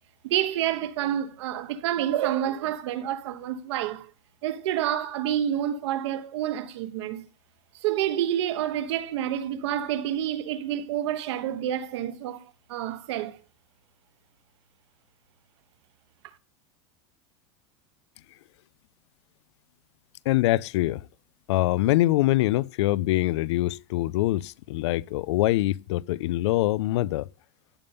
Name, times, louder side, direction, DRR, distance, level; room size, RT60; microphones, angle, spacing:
voice 1, 0.2-4.1 4.4-7.2 7.8-13.4, right 11 dB, 65° right, 1.2 m, -28 dB
voice 2, 20.3-21.0 21.5-27.3, left 16 dB, 65° left, 0.4 m, -24 dB
16.0 x 5.4 x 3.5 m
supercardioid pair, 175°, 16 cm